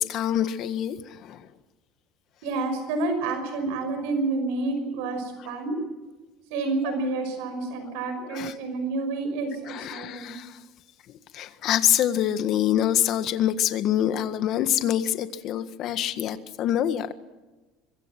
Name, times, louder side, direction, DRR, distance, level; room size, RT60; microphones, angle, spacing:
voice 1, 0.0-1.5 6.8-6.9 8.3-8.5 9.7-10.6 11.1-17.1, left 11 dB, 50° left, 10 dB, 1.6 m, -26 dB
voice 2, 2.4-5.8 6.5-10.4, right 3 dB, 90° right, 7 dB, 5.8 m, -29 dB
25.0 x 23.5 x 6.1 m, 1.2 s
cardioid pair, 155°, 0 cm